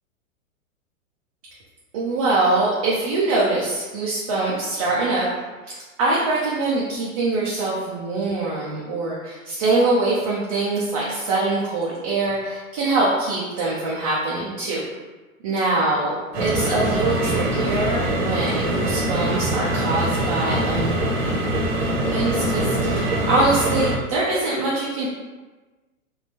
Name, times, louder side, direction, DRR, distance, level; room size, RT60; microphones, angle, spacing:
voice 1, 1.9-5.3 5.7-14.8 15.4-16.1 16.4-21.0 22.1-25.1, right 2 dB, 30° right, -5 dB, 0.4 m, -23 dB
sound 1, 16.3-24.0, right 1 dB, 50° right, 0.9 m, -23 dB
3.6 x 2.3 x 2.7 m, 1.2 s
figure-of-eight pair, 110°, 42 cm